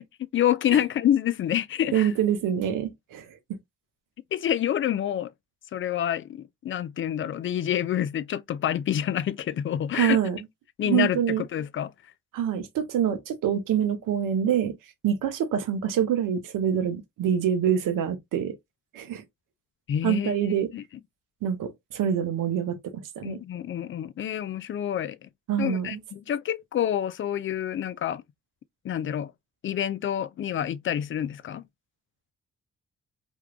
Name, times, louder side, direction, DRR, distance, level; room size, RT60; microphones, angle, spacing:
voice 1, 0.2-2.1 4.3-5.3 5.7-10.2 10.8-11.9 19.9-20.3 20.7-20.8 23.2-25.3 25.6-28.2 28.8-29.3 29.6-31.6, left 10 dB, 40° left, 0.4 m, -27 dB
voice 2, 1.9-3.3 9.9-10.4 10.9-11.4 12.3-14.8 15.0-18.5 18.9-19.2 20.0-20.7 21.4-23.4 25.5-26.0, right 9 dB, 70° right, 0.8 m, -26 dB
3.5 x 2.3 x 2.3 m
hypercardioid pair, 45°, 33 cm